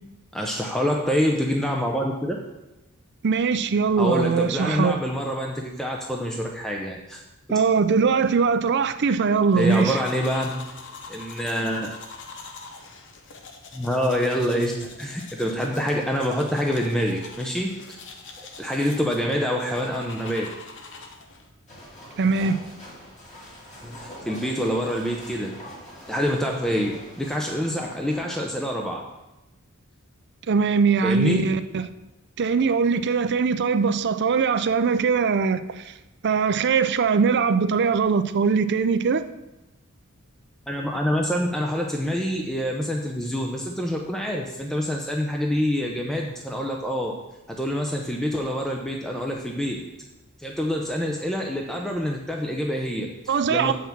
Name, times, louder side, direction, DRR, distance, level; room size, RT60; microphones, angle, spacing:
voice 1, 0.3-2.4 4.0-7.2 9.5-10.6 11.1-11.9 13.7-18.0 18.4-20.5 23.8-25.6 26.1-29.0 31.0-31.5 40.7-47.2 47.5-49.8 50.4-53.7, equal, ahead, 0 dB, 0.6 m, -26 dB
voice 2, 3.2-5.0 7.5-10.0 22.2-22.6 30.5-31.8 32.4-35.9 36.2-39.2 53.3-53.7, right 5 dB, 55° right, 11 dB, 0.5 m, -21 dB
sound 1, 9.5-21.5, left 4 dB, 60° left, 0.9 m, -43 dB
sound 2, 21.7-28.2, equal, 35° left, 2.4 m, -44 dB
7.4 x 5.7 x 5.9 m, 0.98 s
head